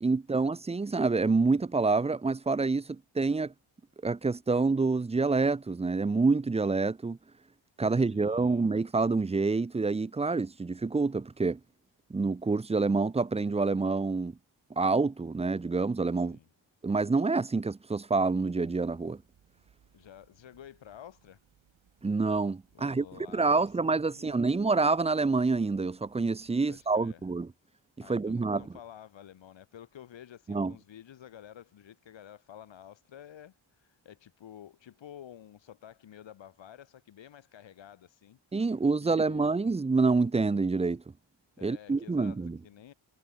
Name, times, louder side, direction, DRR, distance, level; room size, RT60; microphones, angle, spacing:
voice 1, 0.0-3.5 4.0-7.2 7.8-11.6 12.1-14.3 14.8-16.4 16.8-19.2 22.0-23.1 23.3-27.5 28.1-28.6 30.5-30.7 38.5-41.0 41.6-42.6, right 3 dB, 15° right, 0.4 m, -27 dB
voice 2, 7.8-8.7 16.3-16.5 19.9-21.4 22.7-24.5 26.7-27.2 28.0-38.4 39.0-39.5 41.6-42.9, left 10 dB, 65° left, 1.2 m, -51 dB
sound 1, 18.3-27.0, right 8 dB, 75° right, 4.9 m, -67 dB
wide cardioid pair, 125°, 48 cm